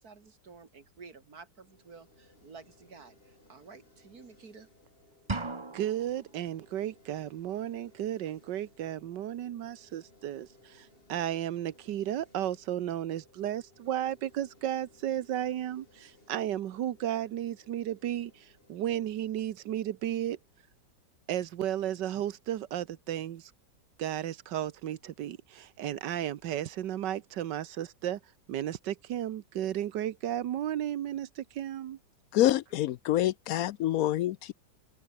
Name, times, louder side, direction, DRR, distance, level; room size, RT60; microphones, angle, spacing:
voice 1, 0.0-4.7, right 4 dB, 55° right, 3.0 m, -52 dB
sound 1, 1.5-20.6, left 2 dB, 30° left, 4.3 m, -62 dB
sound 2, 5.3-6.3, right 3 dB, 20° right, 1.1 m, -36 dB
voice 2, 5.7-20.4 21.3-23.5 24.0-28.2 28.5-32.0, right 11 dB, 70° right, 1.6 m, -34 dB
voice 3, 32.3-34.5, left 13 dB, 70° left, 0.9 m, -27 dB
open air
omnidirectional pair, 2.0 m